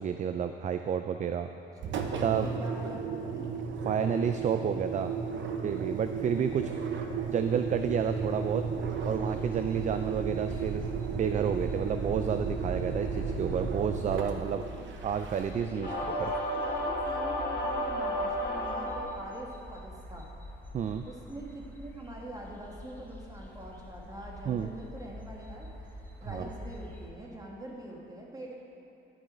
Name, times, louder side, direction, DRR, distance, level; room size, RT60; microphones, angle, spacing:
voice 1, 0.0-1.5 2.2-2.5 3.9-5.1 5.6-6.7 7.3-8.7 9.0-10.8 11.1-14.6 15.0-15.9 20.7-21.1 24.5-24.7 26.2-26.5, right 7 dB, 40° right, 8 dB, 0.4 m, -30 dB
Engine, 1.8-15.8, right 5 dB, 70° right, 0.8 m, -34 dB
voice 2, 2.0-3.5 6.6-6.8 14.4-14.9 15.7-20.3 21.0-25.9 26.2-28.6, right 1 dB, 20° right, -2 dB, 1.7 m, -44 dB
sound 1, 9.1-27.1, equal, 10° left, 1.3 m, -46 dB
sound 2, 15.8-19.3, left 1 dB, 60° left, 2.3 m, -32 dB
11.0 x 6.2 x 4.4 m, 2.9 s
cardioid pair, 90°, 20 cm